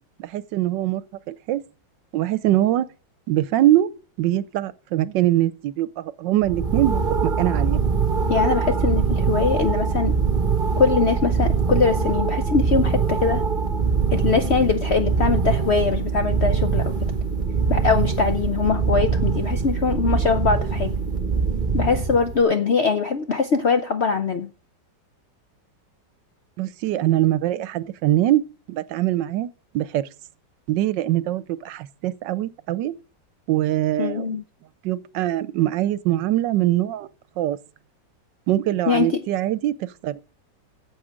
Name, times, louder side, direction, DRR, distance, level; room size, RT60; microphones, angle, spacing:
voice 1, 0.2-1.0 1.3-1.6 2.1-2.9 3.3-3.9 4.2-7.8 26.6-28.4 28.7-29.5 29.7-30.0 30.7-32.9 33.5-34.4 34.8-37.1 37.4-37.6 38.5-39.7 40.0-40.2, right 14 dB, 75° right, 1.3 m, -22 dB
sound 1, 6.4-22.4, right 5 dB, 30° right, 1.1 m, -23 dB
voice 2, 8.3-10.1 10.8-13.4 14.1-17.1 17.7-21.0 21.7-24.5 34.0-34.4 38.9-39.2, left 5 dB, 60° left, 0.7 m, -22 dB
8.7 x 7.4 x 6.3 m
omnidirectional pair, 2.0 m